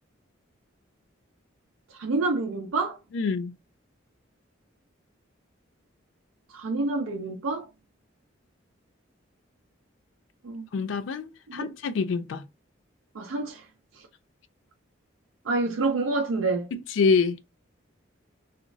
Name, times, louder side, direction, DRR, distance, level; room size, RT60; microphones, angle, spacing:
voice 1, 1.9-3.0 6.5-7.7 10.4-10.6 11.5-11.7 13.1-13.6 15.4-16.7, right 3 dB, 90° right, 0.5 m, -28 dB
voice 2, 3.1-3.5 10.7-12.4 16.7-17.4, left 5 dB, 70° left, 0.3 m, -26 dB
2.9 x 2.4 x 2.5 m
head